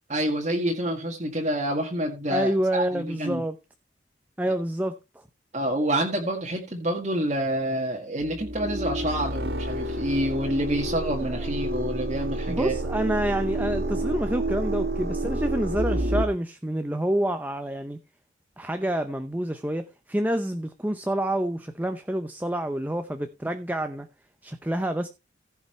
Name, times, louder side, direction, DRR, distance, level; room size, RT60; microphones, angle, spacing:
voice 1, 0.1-3.4 5.5-12.8, right 1 dB, 40° right, 1.8 m, -28 dB
voice 2, 2.3-3.6 4.4-5.0 11.2-11.9 12.5-18.0 18.6-24.1 24.4-25.1, right 1 dB, 10° right, 0.7 m, -28 dB
sound 1, 8.2-16.2, right 1 dB, 60° right, 1.7 m, -29 dB
15.5 x 5.7 x 4.3 m
head